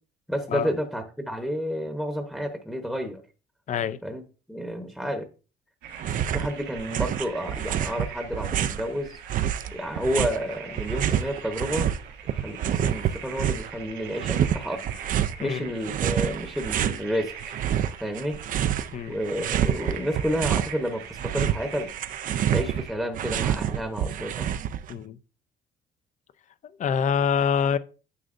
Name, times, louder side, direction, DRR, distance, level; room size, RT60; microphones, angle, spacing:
voice 1, 0.3-3.2 4.0-4.2 4.5-5.3 6.3-9.2 9.7-11.9 12.3-14.8 15.4-17.3 18.0-18.4 19.1-21.9 22.5-24.5, equal, ahead, 1.0 m, -30 dB
voice 2, 3.7-4.0 15.4-15.7 18.9-19.2 24.9-25.2 26.8-27.8, left 7 dB, 45° left, 0.6 m, -25 dB
sound 1, 5.8-23.0, right 7 dB, 85° right, 1.5 m, -42 dB
sound 2, 6.0-6.5 6.8-8.9 9.3-12.0 12.3-13.7 14.2-15.4 15.8-17.0 17.4-18.9 19.2-20.7 21.0-24.9, right 10 dB, 55° right, 0.5 m, -27 dB
9.7 x 6.6 x 2.6 m
cardioid pair, 110°, 17 cm